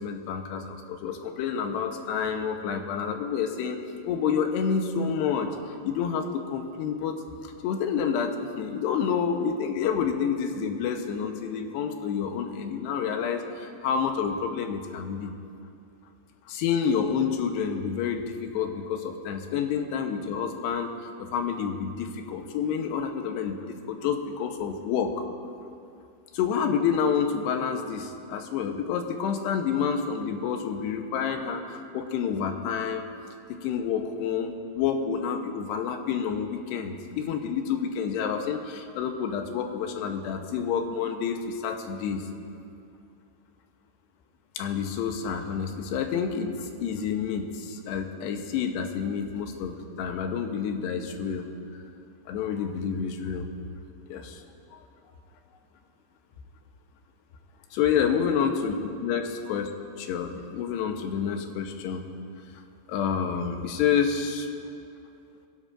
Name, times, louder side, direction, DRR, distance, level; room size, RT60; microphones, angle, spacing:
voice 1, 0.0-3.8 4.0-5.5 5.8-7.2 7.4-15.3 16.5-20.9 21.2-25.3 26.3-33.1 33.5-42.3 44.6-51.5 52.3-53.5 54.1-54.4 54.7-54.8 57.8-58.7 59.0-59.7 60.0-62.0 62.9-64.5, left 7 dB, 85° left, 5 dB, 3.0 m, -29 dB
21.5 x 16.5 x 2.5 m, 2.4 s
omnidirectional pair, 4.8 m